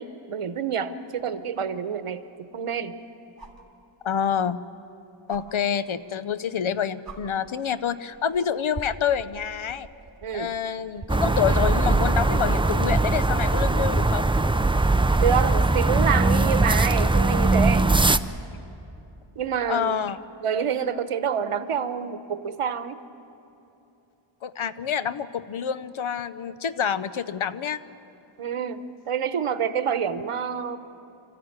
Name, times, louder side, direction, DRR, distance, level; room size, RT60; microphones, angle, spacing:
voice 1, 0.0-2.9 10.2-10.5 15.2-17.9 19.4-20.0 20.4-23.0 28.4-30.8, right 7 dB, 90° right, 11 dB, 1.0 m, -27 dB
sound 1, 1.2-1.3 3.4-3.7 5.3-5.4 6.6-6.7 7.0-7.2 8.1-8.4 8.7-14.4 16.1-16.2, right 3 dB, 45° right, 2.9 m, -43 dB
voice 2, 4.0-4.6 5.3-9.9 10.3-14.3 19.7-20.2 24.4-27.8, left 7 dB, 70° left, 13 dB, 0.8 m, -27 dB
sound 2, 11.1-18.2, right 2 dB, 10° right, 0.4 m, -21 dB
25.5 x 14.5 x 9.6 m, 2.9 s
wide cardioid pair, 105°, 50 cm